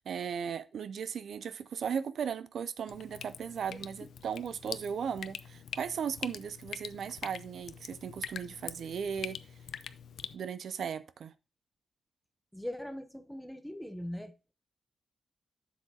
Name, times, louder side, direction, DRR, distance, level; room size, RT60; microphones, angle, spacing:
voice 1, 0.1-9.4 10.3-11.3, right 7 dB, 75° right, 0.4 m, -37 dB
Drip, 2.9-10.4, left 8 dB, 80° left, 0.4 m, -44 dB
voice 2, 3.7-4.1 12.5-14.3, left 1 dB, ahead, 0.8 m, -41 dB
7.7 x 7.3 x 2.8 m
wide cardioid pair, 120°, 0 cm